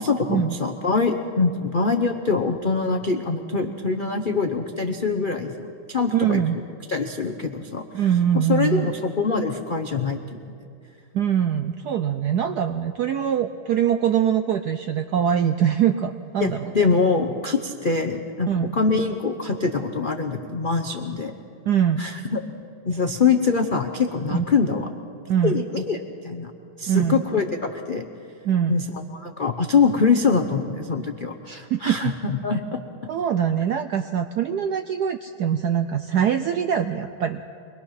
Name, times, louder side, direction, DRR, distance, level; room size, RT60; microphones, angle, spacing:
voice 1, 0.0-5.5 5.9-6.4 6.9-7.8 8.3-10.4 16.4-21.3 22.0-22.4 22.8-24.9 25.4-26.0 26.2-26.5 26.8-28.0 28.7-28.8 29.1-32.8, left 4 dB, 75° left, 3 dB, 0.4 m, -24 dB
voice 2, 6.1-6.6 7.9-8.9 11.1-16.9 18.5-18.8 21.7-22.1 24.3-24.5 25.3-25.7 26.9-27.2 28.4-28.9 31.5-32.1 33.1-37.5, right 9 dB, 75° right, 8 dB, 0.9 m, -23 dB
24.0 x 21.0 x 5.8 m, 2.4 s
omnidirectional pair, 2.4 m